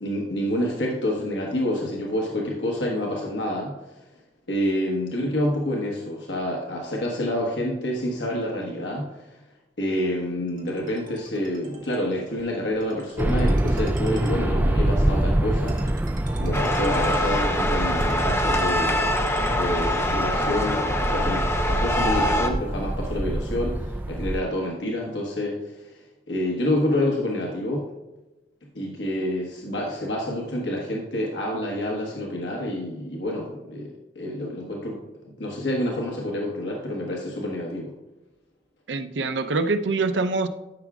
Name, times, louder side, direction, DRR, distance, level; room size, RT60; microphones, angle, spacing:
voice 1, 0.0-3.8 4.5-9.4 9.8-15.8 16.4-19.2 19.5-26.0 26.3-27.9 28.7-35.0 35.4-37.9, left 1 dB, 80° left, -1 dB, 1.2 m, -28 dB
Ringtone, 10.5-20.0, right 2 dB, 50° right, 1.7 m, -46 dB
sound 1, 13.2-24.4, right 1 dB, 10° right, 0.3 m, -25 dB
sound 2, 16.5-22.5, left 1 dB, 15° left, 0.7 m, -24 dB
voice 2, 38.9-40.5, right 3 dB, 90° right, 9 dB, 0.6 m, -24 dB
13.0 x 5.9 x 2.4 m, 1.1 s
head